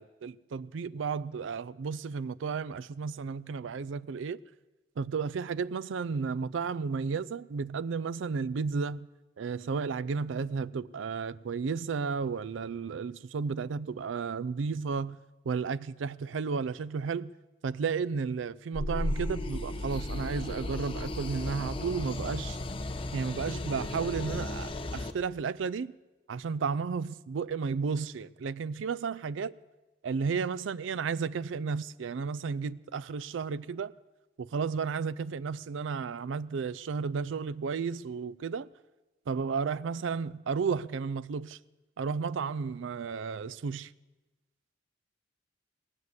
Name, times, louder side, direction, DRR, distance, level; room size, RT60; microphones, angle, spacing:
voice 1, 0.0-4.4 5.0-9.1 9.4-15.2 15.5-17.3 17.6-22.6 23.1-25.9 26.3-29.5 30.0-33.9 34.4-38.7 39.3-41.6 42.0-43.9, right 5 dB, 80° right, 0.4 m, -33 dB
sound 1, 18.7-25.1, left 1 dB, 30° left, 0.8 m, -35 dB
18.0 x 9.6 x 7.9 m
head